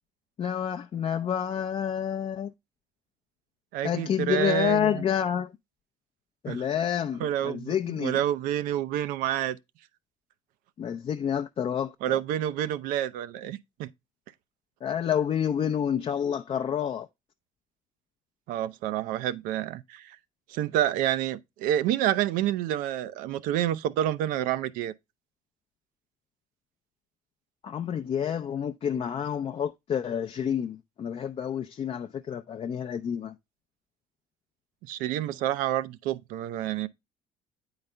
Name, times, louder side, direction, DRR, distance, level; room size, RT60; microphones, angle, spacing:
voice 1, 0.4-2.5 3.8-5.5 6.4-8.2 10.8-12.2 14.8-17.1 27.6-33.3, left 8 dB, 40° left, 0.5 m, -29 dB
voice 2, 3.7-5.0 6.5-6.6 7.2-9.6 12.0-13.9 18.5-20.2 20.5-24.9 34.8-36.9, right 11 dB, 75° right, 0.5 m, -28 dB
8.8 x 4.0 x 3.2 m
supercardioid pair, 85°, 14 cm